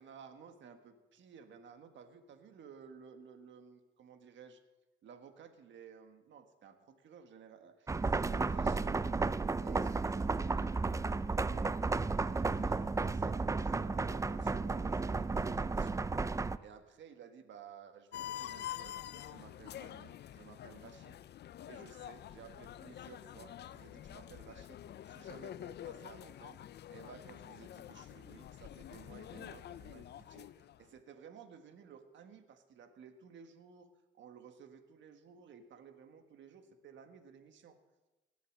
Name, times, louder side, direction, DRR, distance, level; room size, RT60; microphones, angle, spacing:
voice 1, 0.0-4.6 5.0-9.0 9.6-11.0 11.4-11.8 12.2-16.1 16.6-24.8 25.1-33.9 34.1-37.8, right 6 dB, 70° right, 7 dB, 1.7 m, -55 dB
sound 1, 7.9-16.6, right 3 dB, 15° right, 0.4 m, -33 dB
sound 2, 18.1-30.9, left 11 dB, 60° left, 0.5 m, -47 dB
18.0 x 8.3 x 7.3 m, 1.1 s
cardioid pair, 90°, 20 cm